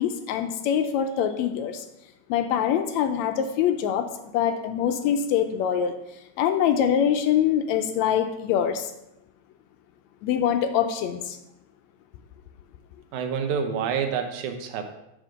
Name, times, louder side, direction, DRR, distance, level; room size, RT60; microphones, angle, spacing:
voice 1, 0.0-1.9 2.3-4.1 4.3-5.9 6.4-8.9 10.2-11.4, left 9 dB, 80° left, 7 dB, 1.7 m, -24 dB
voice 2, 13.1-15.0, right 7 dB, 85° right, 6 dB, 2.2 m, -28 dB
6.3 x 4.3 x 6.4 m, 0.88 s
omnidirectional pair, 3.3 m